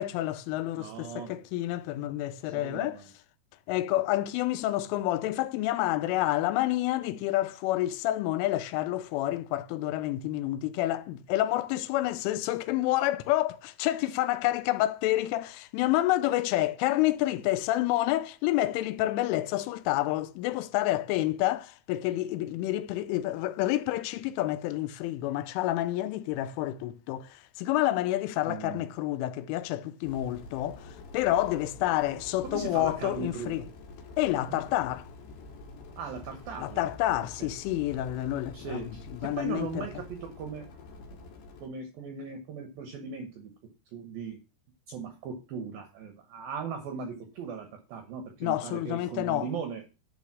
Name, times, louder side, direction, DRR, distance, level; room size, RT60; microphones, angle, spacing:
voice 1, 0.0-3.0 3.7-33.7 34.2-35.1 36.6-38.9 39.2-39.9 48.4-49.5, left 15 dB, 85° left, 3.1 m, -29 dB
voice 2, 0.8-1.3 2.4-3.1 28.5-28.9 32.4-33.5 34.5-34.6 36.0-37.5 38.5-40.7 41.6-43.5 43.9-44.4 44.9-49.8, right 6 dB, 80° right, 2.1 m, -39 dB
sound 1, 30.0-41.7, left 2 dB, 70° left, 4.1 m, -47 dB
11.0 x 4.1 x 7.3 m
omnidirectional pair, 5.6 m